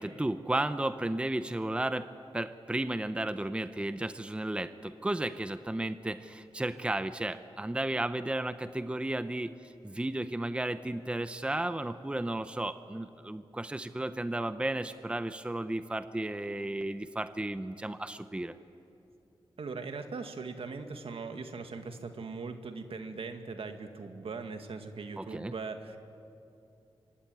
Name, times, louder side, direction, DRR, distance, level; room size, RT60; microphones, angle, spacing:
voice 1, 0.0-2.1 2.3-9.5 9.8-18.5 25.2-25.5, right 1 dB, 10° right, 11 dB, 0.8 m, -33 dB
voice 2, 19.6-26.0, right 4 dB, 75° right, 6 dB, 2.0 m, -40 dB
25.0 x 23.5 x 9.3 m, 2.7 s
wide cardioid pair, 95°, 10 cm